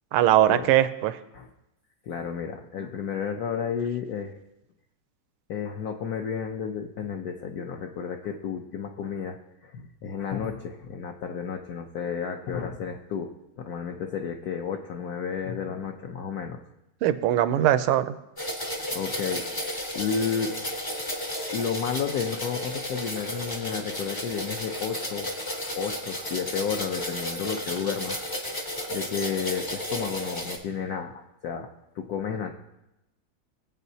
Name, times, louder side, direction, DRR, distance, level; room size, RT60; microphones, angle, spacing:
voice 1, 0.1-1.2 17.0-18.2, right 12 dB, 85° right, 12 dB, 1.5 m, -21 dB
voice 2, 2.1-4.4 5.5-9.4 9.6-16.6 18.9-19.5 19.9-20.5 21.5-25.3 25.8-28.2 28.4-28.6 28.9-31.7 32.0-32.5, left 7 dB, 70° left, 3 dB, 0.9 m, -32 dB
sound 1, 18.4-30.6, left 1 dB, 30° left, 0.4 m, -33 dB
19.5 x 8.2 x 2.7 m, 0.93 s
omnidirectional pair, 2.4 m